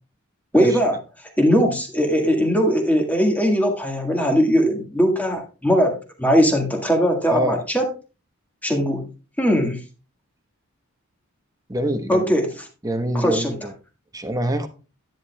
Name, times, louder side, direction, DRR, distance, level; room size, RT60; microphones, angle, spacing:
voice 1, 0.5-0.9 1.4-7.9 8.6-9.1 9.4-9.8 12.1-12.5 13.1-13.5, equal, 10° left, 2 dB, 1.7 m, -19 dB
voice 2, 7.3-7.6 11.7-12.3 12.8-13.7 14.1-14.7, right 1 dB, 15° right, 7 dB, 1.1 m, -25 dB
10.5 x 10.5 x 2.3 m, 0.33 s
head